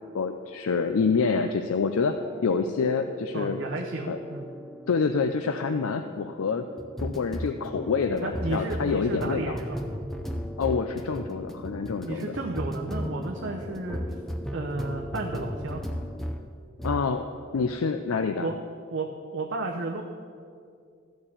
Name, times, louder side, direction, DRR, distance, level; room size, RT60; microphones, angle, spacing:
voice 1, 0.1-3.6 4.1-4.2 4.9-6.7 7.0-9.6 10.6-12.3 16.8-17.3 17.5-18.5, left 5 dB, 85° left, 7 dB, 0.5 m, -27 dB
sound 1, 2.2-16.5 16.8-17.1, equal, ahead, 0.5 m, -36 dB
voice 2, 3.3-4.5 8.2-9.8 12.0-14.0 14.5-15.8 18.4-18.6 18.9-20.0, right 2 dB, 60° right, 0 dB, 0.8 m, -33 dB
13.0 x 4.5 x 8.6 m, 2.3 s
head